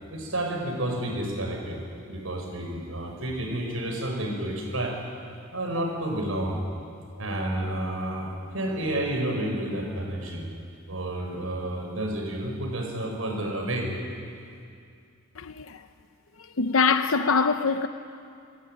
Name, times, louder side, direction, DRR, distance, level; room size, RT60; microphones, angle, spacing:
voice 1, 0.1-1.8 2.1-4.9 5.5-6.6 7.2-10.5 10.9-13.9, right 1 dB, 85° right, 5.8 m, -30 dB
voice 2, 15.4-15.9 16.4-17.9, left 4 dB, 85° left, 0.8 m, -24 dB
28.0 x 17.5 x 9.4 m
head